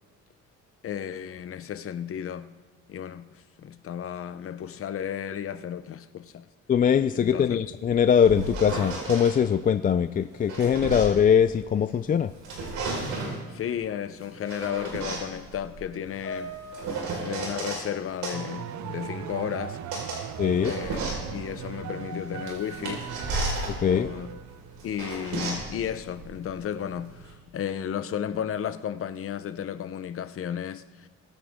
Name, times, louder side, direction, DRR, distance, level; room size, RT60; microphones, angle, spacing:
voice 1, 0.8-2.5 2.9-6.5 7.1-7.6 13.5-16.6 17.2-19.8 20.6-21.0 21.3-23.1 23.8-24.4 24.8-31.1, left 9 dB, 50° left, 0.8 m, -33 dB
voice 2, 6.7-12.3 20.4-20.7 23.8-24.1, left 8 dB, 30° left, 0.4 m, -22 dB
sound 1, 8.0-9.4 10.2-12.0 12.3-13.4 14.2-17.9 18.2-27.3, right 3 dB, 90° right, 4.7 m, -34 dB
Piano, 16.2-18.9 19.1-19.5 20.3-20.4, equal, 65° left, 4.8 m, -43 dB
sound 2, 18.3-24.8, right 10 dB, 70° right, 0.7 m, -38 dB
23.5 x 9.1 x 3.7 m
cardioid pair, 130°, 29 cm